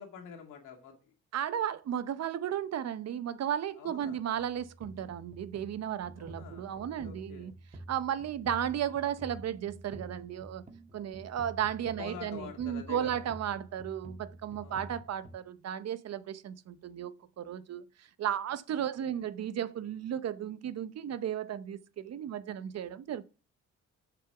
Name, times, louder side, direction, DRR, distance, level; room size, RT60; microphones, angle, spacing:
voice 1, 0.0-1.1 3.8-4.2 6.2-7.5 12.0-13.2 14.6-14.9 19.1-19.2, left 7 dB, 90° left, 2.2 m, -47 dB
voice 2, 1.3-7.5 7.9-10.6 10.9-23.2, right 10 dB, 60° right, 0.8 m, -34 dB
sound 1, 4.3-15.4, right 1 dB, 25° right, 1.6 m, -49 dB
7.2 x 6.8 x 5.9 m
cardioid pair, 90°, 30 cm